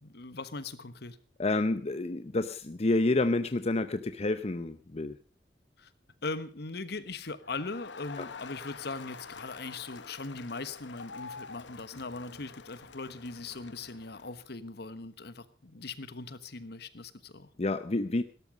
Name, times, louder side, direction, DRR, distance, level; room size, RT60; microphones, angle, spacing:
voice 1, 0.0-1.2 5.8-5.9 6.2-17.5, left 3 dB, 65° left, 14 dB, 1.3 m, -40 dB
voice 2, 1.4-5.2 8.2-8.3 17.6-18.2, left 2 dB, 35° left, 11 dB, 0.7 m, -29 dB
Crowd, 7.4-14.5, left 5 dB, 85° left, 0.9 m, -47 dB
17.5 x 12.5 x 5.2 m, 0.38 s
head